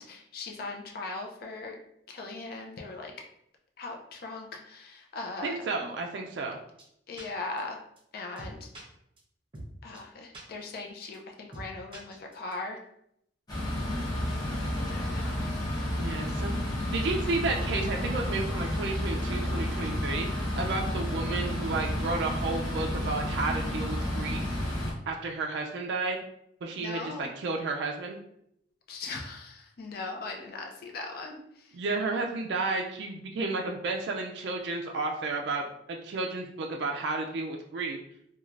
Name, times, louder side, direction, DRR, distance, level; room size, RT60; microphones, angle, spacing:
voice 1, 0.0-1.8 2.1-3.1 3.8-5.9 7.1-7.8 8.1-8.7 9.8-12.8 14.9-15.5 26.8-27.3 28.9-31.4, left 3 dB, 50° left, 1 dB, 0.4 m, -39 dB
voice 2, 5.4-6.6 16.0-16.5 16.9-24.5 25.1-26.2 26.6-28.2 31.7-38.0, right 3 dB, 60° right, 1 dB, 0.3 m, -32 dB
sound 1, 6.8-6.9 7.2-7.3 7.6-7.7 8.0-8.1 8.4-8.8 9.2-9.3 9.5-9.7 9.9-10.0 10.3-10.4 10.7-10.8 11.1-11.2 11.5-11.7 11.9-12.5, right 1 dB, 30° right, 0.8 m, -43 dB
sound 2, 13.5-24.9, left 1 dB, 20° left, 0.8 m, -31 dB
3.1 x 2.3 x 2.4 m, 0.74 s
head